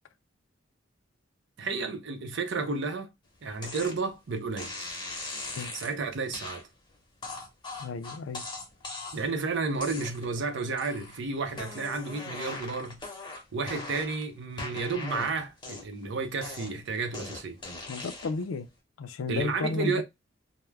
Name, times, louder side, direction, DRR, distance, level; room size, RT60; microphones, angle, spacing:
voice 1, 1.6-3.1 3.4-4.9 5.7-6.7 9.1-13.1 13.5-17.6 19.3-20.0, right 4 dB, 65° right, 0.6 m, -32 dB
sound 1, 3.6-4.0 4.6-5.9 6.3-6.6 7.2-9.3 9.8-10.4 10.8-11.2 11.5-14.2 14.6-16.0 16.4-18.4, left 2 dB, 25° left, 0.8 m, -40 dB
voice 2, 7.8-8.4 17.9-18.7 19.0-20.0, left 4 dB, 85° left, 0.4 m, -33 dB
2.3 x 2.1 x 3.2 m
head